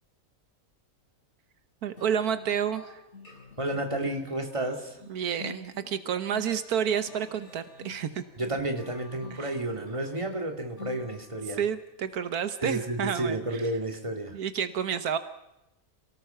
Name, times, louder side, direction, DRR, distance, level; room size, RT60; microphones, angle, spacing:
voice 1, 1.8-3.0 5.1-8.2 9.3-9.5 11.5-13.7 14.3-15.2, right 8 dB, 85° right, 11 dB, 1.5 m, -30 dB
sound 1, 2.0-11.6, left 4 dB, 45° left, 6.3 m, -48 dB
voice 2, 3.6-5.0 8.4-11.6 12.6-14.4, right 1 dB, 20° right, 3 dB, 2.5 m, -31 dB
28.5 x 18.0 x 5.7 m, 0.88 s
omnidirectional pair, 1.6 m